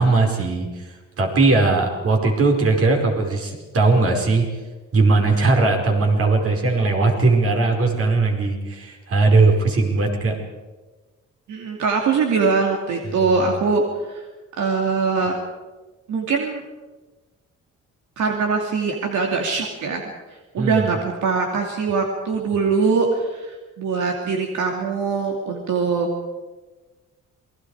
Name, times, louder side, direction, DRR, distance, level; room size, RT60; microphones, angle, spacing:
voice 1, 0.0-4.5 4.9-10.4 13.0-13.6 20.6-20.9, right 3 dB, 50° right, 2 dB, 5.1 m, -19 dB
voice 2, 11.5-13.8 14.1-14.2 14.6-15.4 16.1-16.6 18.2-20.0 20.5-26.1, right 4 dB, 75° right, 1 dB, 2.9 m, -22 dB
28.5 x 21.5 x 5.0 m, 1.2 s
cardioid pair, 125°, 29 cm